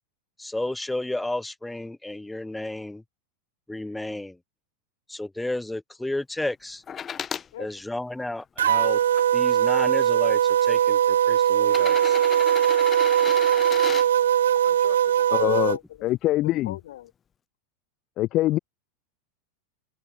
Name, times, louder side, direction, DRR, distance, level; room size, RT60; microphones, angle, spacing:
voice 1, 0.4-3.0 3.7-4.4 5.1-6.8 7.6-9.0 9.3-12.2, left 1 dB, 5° left, 1.3 m, -32 dB
sound 1, 6.9-7.5 8.2-9.2 10.2-10.3 11.6-14.1 15.9-16.0, left 8 dB, 25° left, 3.2 m, -34 dB
sound 2, 8.6-15.8, right 10 dB, 75° right, 0.4 m, -20 dB
voice 2, 14.6-16.1 16.4-17.1, left 13 dB, 65° left, 3.6 m, -42 dB
voice 3, 15.3-16.7 18.2-18.6, left 16 dB, 45° left, 0.3 m, -24 dB
hypercardioid pair, 90°, 0 cm